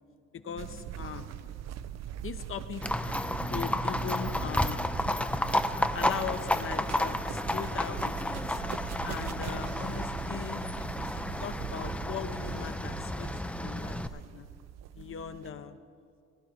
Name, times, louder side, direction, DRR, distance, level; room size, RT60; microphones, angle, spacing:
voice 1, 0.3-1.3 2.2-2.9 3.5-4.9 5.7-8.6 9.0-10.6 11.0-14.5 15.0-15.8, left 7 dB, 45° left, 9 dB, 0.8 m, -39 dB
sound 1, 0.6-15.5, right 10 dB, 60° right, 0.5 m, -41 dB
Livestock farm animals working animals, 2.8-14.1, left 1 dB, 5° left, 0.4 m, -32 dB
18.5 x 11.5 x 4.2 m, 2.4 s
cardioid pair, 90°, 30 cm